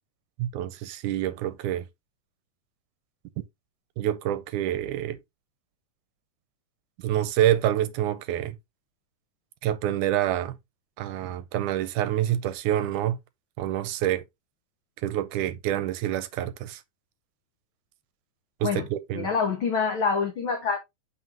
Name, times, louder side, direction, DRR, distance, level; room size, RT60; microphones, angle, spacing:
voice 1, 0.4-1.9 4.0-5.2 7.0-8.6 9.6-10.6 11.0-13.2 13.6-14.2 15.0-16.8 18.6-19.3, right 12 dB, 80° right, 2.0 m, -27 dB
voice 2, 19.1-20.8, left 5 dB, 75° left, 1.1 m, -26 dB
7.2 x 5.8 x 2.9 m
omnidirectional pair, 3.7 m